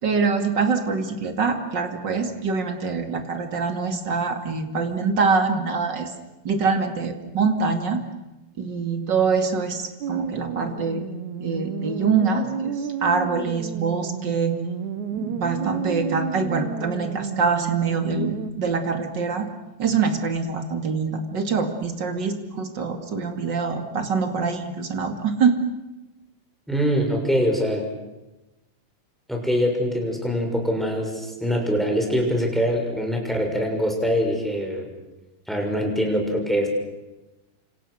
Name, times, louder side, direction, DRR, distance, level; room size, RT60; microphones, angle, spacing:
voice 1, 0.0-6.1 6.4-8.0 8.6-11.0 11.4-14.6 15.1-19.5 19.8-25.6, right 5 dB, 35° right, 6 dB, 2.7 m, -24 dB
sound 1, 10.0-18.5, right 7 dB, 70° right, 2.6 m, -31 dB
voice 2, 26.7-27.9 29.3-34.9 35.5-36.7, equal, ahead, 2 dB, 6.2 m, -23 dB
29.0 x 27.0 x 6.5 m, 1.0 s
omnidirectional pair, 3.7 m